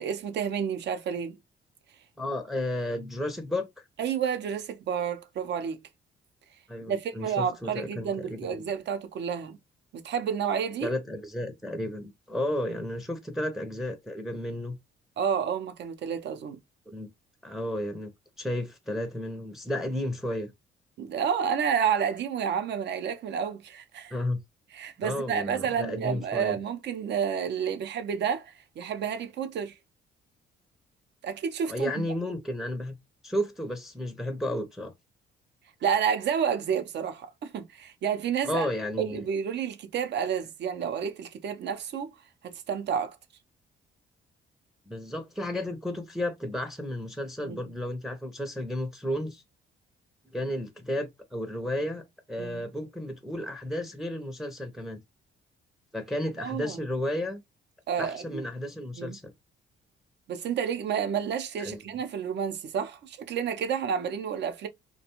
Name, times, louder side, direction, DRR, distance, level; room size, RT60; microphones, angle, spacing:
voice 1, 0.0-1.4 4.0-5.8 6.8-9.6 10.0-10.9 15.2-16.6 21.0-24.1 24.7-29.7 31.2-32.1 35.8-38.7 39.0-42.1 42.4-43.2 47.4-47.6 52.4-52.6 56.4-56.8 57.9-58.4 58.9-59.2 60.3-64.7, right 7 dB, 60° right, 0.5 m, -30 dB
voice 2, 2.2-3.8 6.7-8.6 10.8-14.8 16.9-17.1 17.4-18.1 18.4-20.5 24.1-24.4 25.0-26.6 31.7-33.0 33.2-34.9 38.4-39.2 44.9-49.4 50.3-55.0 55.9-57.4 58.0-59.3 61.6-61.8, left 1 dB, ahead, 0.5 m, -33 dB
2.5 x 2.2 x 2.8 m
cardioid pair, 90°, 20 cm